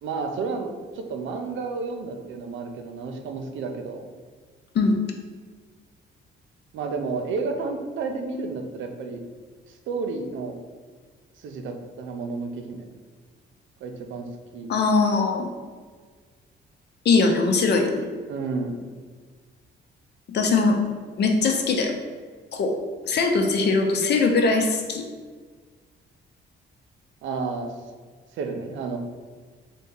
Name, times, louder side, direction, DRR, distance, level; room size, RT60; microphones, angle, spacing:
voice 1, 0.0-4.0 6.7-9.2 9.7-10.6 11.4-12.9 13.8-14.3 14.5-14.7 18.3-18.8 27.2-27.7 28.3-29.0, right 4 dB, 75° right, 4 dB, 0.6 m, -31 dB
voice 2, 14.7-15.5 17.0-18.1 20.3-20.8 21.2-21.9 22.5-22.8 23.0-25.0, left 4 dB, 60° left, 3 dB, 0.7 m, -21 dB
3.7 x 2.9 x 3.8 m, 1.5 s
cardioid pair, 90°, 20 cm